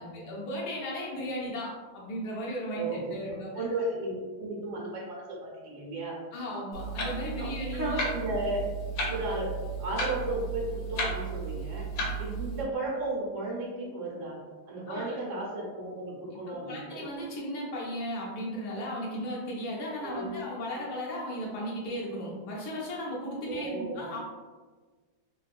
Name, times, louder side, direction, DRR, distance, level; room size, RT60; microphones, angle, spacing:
voice 1, 0.0-2.8 3.1-3.5 6.3-8.0 14.9-15.1 16.5-24.2, equal, 65° left, -4 dB, 1.2 m, -36 dB
voice 2, 2.7-6.2 7.4-8.6 9.1-11.9 12.2-14.4 14.7-17.1 20.0-20.4 23.5-24.0, right 2 dB, 80° right, -4 dB, 1.4 m, -34 dB
Clock, 6.7-12.6, right 2 dB, 85° left, 1.4 m, -34 dB
3.5 x 2.2 x 2.4 m, 1.4 s
omnidirectional pair, 2.1 m